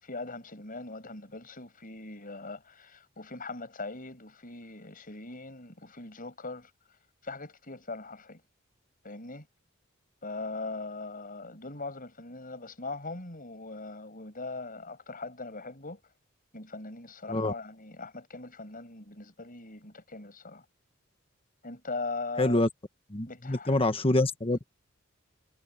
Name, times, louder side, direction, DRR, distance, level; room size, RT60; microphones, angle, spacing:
voice 1, 0.0-6.7 7.2-8.4 9.0-9.5 10.2-16.0 16.5-20.6 21.6-22.6 23.2-23.9, left 3 dB, 45° left, 6.6 m, -40 dB
voice 2, 22.4-22.7 23.1-24.7, left 2 dB, 30° left, 1.4 m, -26 dB
head